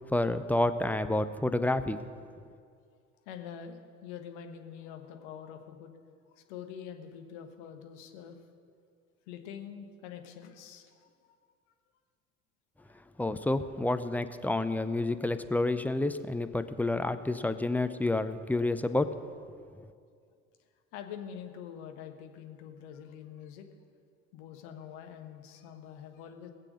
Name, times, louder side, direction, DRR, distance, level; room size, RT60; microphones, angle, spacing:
voice 1, 0.1-2.0 13.2-19.1, left 2 dB, 5° left, 10 dB, 0.5 m, -29 dB
voice 2, 3.2-5.9 6.3-8.4 9.3-11.5 12.8-12.9 20.9-23.7 24.3-26.5, left 8 dB, 60° left, 6 dB, 1.4 m, -45 dB
20.0 x 7.6 x 6.5 m, 2.2 s
figure-of-eight pair, 60°, 37 cm